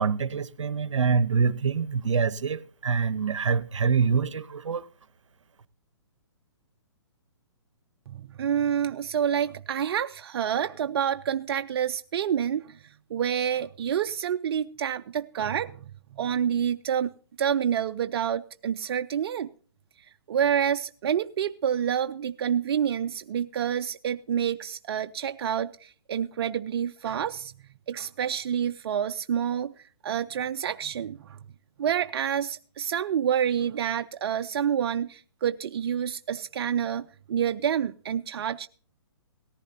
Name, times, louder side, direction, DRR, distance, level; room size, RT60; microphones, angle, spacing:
voice 1, 0.0-4.9, right 5 dB, 85° right, 0.9 m, -25 dB
voice 2, 8.1-15.8 16.1-17.1 17.4-19.5 20.3-27.5 27.9-29.7 30.0-31.4 31.8-38.7, right 9 dB, 55° right, 0.5 m, -28 dB
18.0 x 14.5 x 2.7 m
hypercardioid pair, 145°, 15 cm